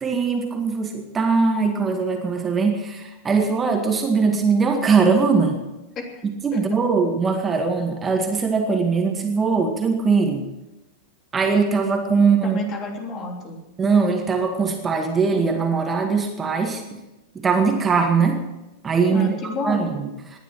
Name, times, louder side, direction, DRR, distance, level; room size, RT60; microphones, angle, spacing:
voice 1, 0.0-5.6 6.2-10.4 11.3-12.6 13.8-16.8 17.4-18.4 18.8-19.3 19.6-20.4, right 5 dB, 20° right, 3 dB, 2.0 m, -21 dB
voice 2, 12.4-13.6 19.1-19.9, left 2 dB, 30° left, 2 dB, 3.3 m, -30 dB
19.5 x 11.5 x 6.1 m, 1.0 s
figure-of-eight pair, 90°, 0 cm